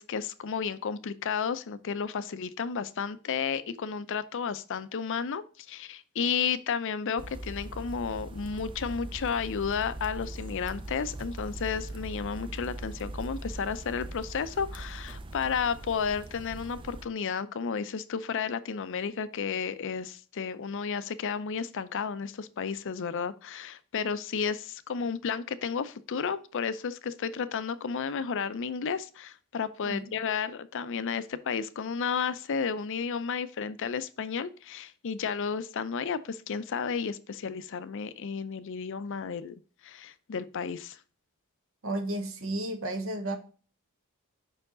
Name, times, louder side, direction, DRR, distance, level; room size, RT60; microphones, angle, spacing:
voice 1, 0.0-39.6 39.8-41.0, left 6 dB, 60° left, 0.5 m, -32 dB
sound 1, 7.2-17.1, right 1 dB, 25° right, 0.5 m, -41 dB
voice 2, 41.8-43.4, right 1 dB, 65° right, 1.1 m, -32 dB
5.7 x 4.6 x 3.8 m
head